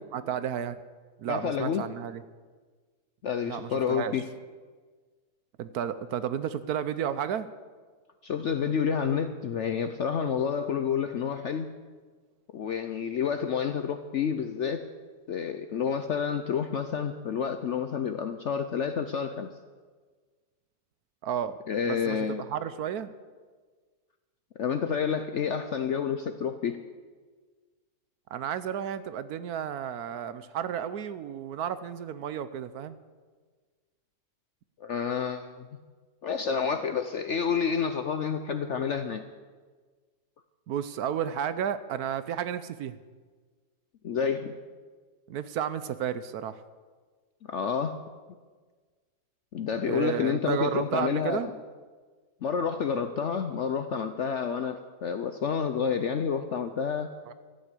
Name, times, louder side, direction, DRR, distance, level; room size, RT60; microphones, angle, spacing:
voice 1, 0.1-0.8 1.2-2.2 3.5-4.1 5.6-7.5 21.2-21.6 21.8-23.1 28.3-33.0 40.7-43.0 45.3-46.6 49.9-51.5 57.3-57.4, right 9 dB, 70° right, 13 dB, 1.1 m, -32 dB
voice 2, 1.3-1.8 3.2-4.2 8.2-11.7 12.5-14.8 15.3-19.5 21.7-22.4 24.6-26.8 34.8-35.7 36.2-39.2 44.0-44.5 47.5-48.0 49.5-51.5 52.4-57.1, left 7 dB, 65° left, 9 dB, 0.7 m, -29 dB
14.0 x 8.9 x 8.2 m, 1.5 s
omnidirectional pair, 1.8 m